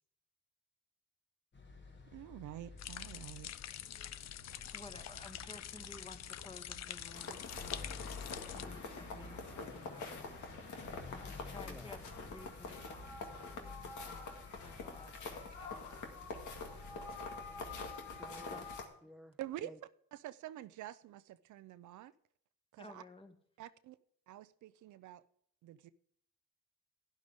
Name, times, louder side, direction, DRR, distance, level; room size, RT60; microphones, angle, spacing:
sound 1, 1.5-18.8, left 3 dB, 35° left, 1.8 m, -52 dB
voice 1, 2.1-3.5 19.4-22.1 22.7-23.0 23.6-24.0 24.3-25.2 25.6-25.9, right 13 dB, 75° right, 0.6 m, -48 dB
sound 2, 2.8-8.6, left 11 dB, 60° left, 0.6 m, -46 dB
voice 2, 4.7-8.2 8.5-13.7 14.0-18.0 18.5-18.7 22.8-23.3, left 2 dB, 20° left, 1.6 m, -55 dB
sound 3, 7.1-18.9, left 4 dB, 75° left, 2.0 m, -46 dB
voice 3, 11.6-12.0 18.2-18.6 19.0-19.4 19.6-19.8, equal, ahead, 0.4 m, -54 dB
11.5 x 10.5 x 3.6 m
cardioid pair, 90°, 30 cm